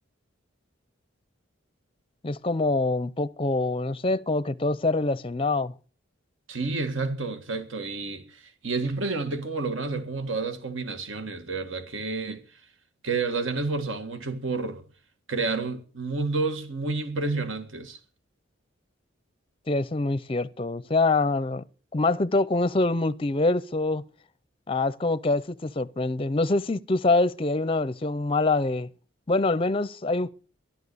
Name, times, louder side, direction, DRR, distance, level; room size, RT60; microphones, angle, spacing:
voice 1, 2.2-5.7 19.7-21.6 21.9-24.0 24.7-28.9 29.3-30.3, left 2 dB, 25° left, 0.6 m, -25 dB
voice 2, 6.5-12.4 13.0-14.8 15.3-18.0, right 3 dB, 70° right, 1.8 m, -30 dB
13.0 x 11.5 x 6.8 m
head